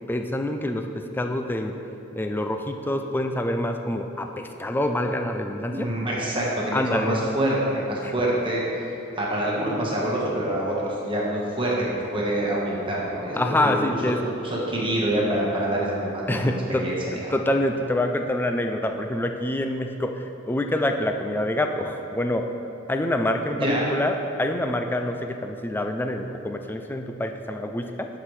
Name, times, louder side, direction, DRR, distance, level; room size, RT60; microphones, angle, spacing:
voice 1, 0.1-1.8 2.1-5.9 6.7-7.2 8.0-8.1 13.3-14.2 16.3-16.9 17.1-22.5 22.9-24.1 24.4-28.1, left 1 dB, 10° left, 5 dB, 0.3 m, -26 dB
voice 2, 5.7-14.0 14.3-17.2 23.5-23.8, right 1 dB, 25° right, -4 dB, 1.3 m, -26 dB
11.5 x 5.9 x 3.2 m, 2.9 s
head